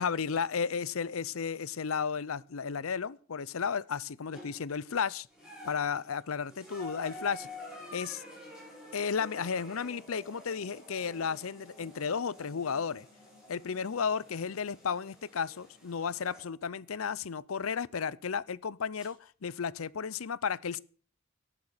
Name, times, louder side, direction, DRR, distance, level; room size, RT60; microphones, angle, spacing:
voice 1, 0.0-5.3 5.6-7.5 7.9-8.2 8.9-13.1 13.5-20.8, left 6 dB, 90° left, 0.6 m, -33 dB
sound 1, 4.3-4.8 5.3-16.5 17.6-17.7 19.0-19.1, left 1 dB, 5° right, 7.4 m, -49 dB
14.0 x 11.0 x 6.6 m
head